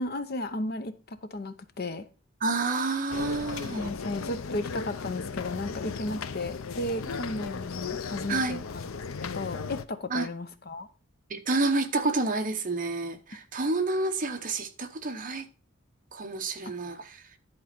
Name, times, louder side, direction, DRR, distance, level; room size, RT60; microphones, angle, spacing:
voice 1, 0.0-2.0 3.7-8.9 9.2-10.9, left 2 dB, 45° left, 0.8 m, -34 dB
voice 2, 2.4-3.9 8.3-8.6 10.1-10.3 11.3-15.5 16.1-17.3, right 3 dB, 40° right, 1.0 m, -29 dB
sound 1, 3.1-9.9, left 5 dB, 75° left, 0.6 m, -36 dB
11.0 x 4.1 x 5.9 m
head